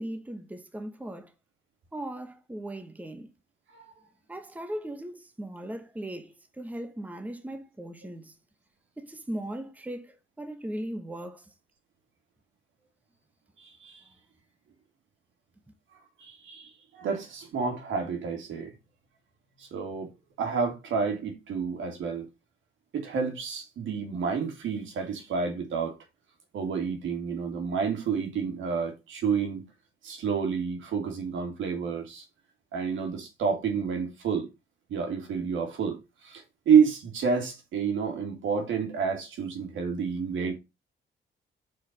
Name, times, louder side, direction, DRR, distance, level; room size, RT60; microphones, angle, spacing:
voice 1, 0.0-1.3 1.9-3.3 4.3-8.3 9.0-11.5, right 1 dB, 10° right, 1.1 m, -38 dB
voice 2, 13.6-14.0 16.2-18.7 19.6-20.1 20.4-22.3 22.9-25.9 26.5-29.6 30.0-32.2 32.7-34.5 34.9-40.5, right 6 dB, 75° right, 2.6 m, -29 dB
5.0 x 4.4 x 6.0 m
cardioid pair, 90°, 20 cm